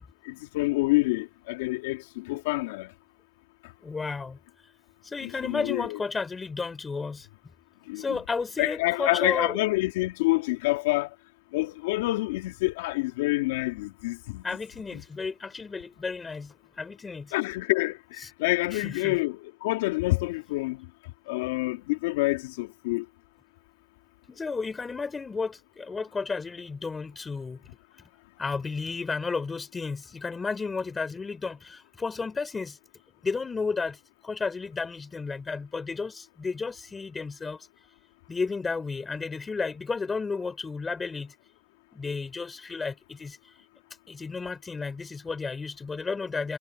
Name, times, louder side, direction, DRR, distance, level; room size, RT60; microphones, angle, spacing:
voice 1, 0.3-2.9 5.2-6.0 7.9-8.2 8.6-11.1 11.5-14.4 17.3-18.0 18.4-20.8 21.3-23.0, left 21 dB, 70° left, 3.4 m, -27 dB
voice 2, 3.8-4.4 5.0-7.3 8.0-9.6 14.4-17.3 18.2-18.3 18.7-19.2 24.3-27.6 28.4-32.8 33.2-37.7 38.3-41.3 41.9-43.4 44.1-46.6, left 4 dB, 15° left, 6.1 m, -32 dB
supercardioid pair, 150°, 0 cm